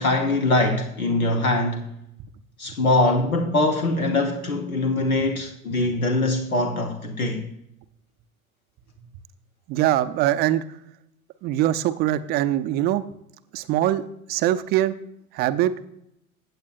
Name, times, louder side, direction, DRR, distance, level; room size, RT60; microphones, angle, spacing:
voice 1, 0.0-1.8 2.6-7.5, left 2 dB, 80° left, 1.0 m, -22 dB
voice 2, 9.7-10.6 11.4-13.0 13.5-15.0 15.3-15.7, right 13 dB, 25° right, 0.4 m, -22 dB
15.5 x 8.7 x 2.4 m
figure-of-eight pair, 80°, 42 cm